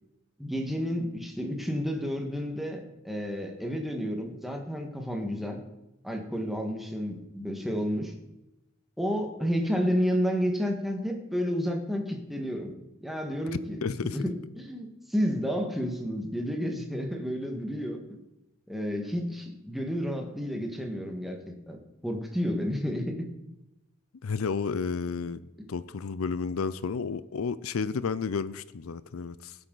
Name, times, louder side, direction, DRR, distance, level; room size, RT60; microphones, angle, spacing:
voice 1, 0.4-5.6 6.0-8.1 9.0-12.7 13.0-18.0 18.7-21.8 22.0-23.3, equal, ahead, 2 dB, 1.7 m, -31 dB
voice 2, 13.8-14.2 24.2-25.4 25.7-29.6, left 5 dB, 90° left, 16 dB, 0.5 m, -31 dB
19.0 x 8.3 x 4.0 m, 0.92 s
head